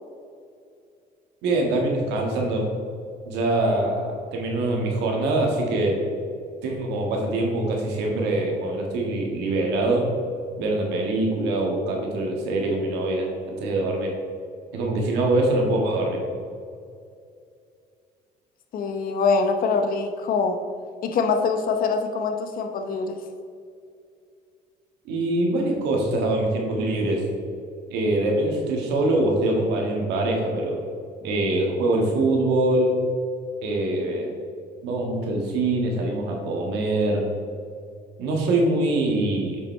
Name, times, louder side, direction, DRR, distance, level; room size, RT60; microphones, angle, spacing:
voice 1, 1.4-2.7 3.2-6.0 6.6-10.1 10.6-14.1 14.7-16.2 25.0-27.2 27.9-30.8 31.2-32.9 33.6-34.3 34.8-37.2 38.2-39.6, right 2 dB, 90° right, 0 dB, 1.6 m, -24 dB
voice 2, 18.7-20.6 21.0-23.2, left 4 dB, 60° left, 6 dB, 0.8 m, -24 dB
7.9 x 6.0 x 3.2 m, 2.4 s
cardioid pair, 110°, 17 cm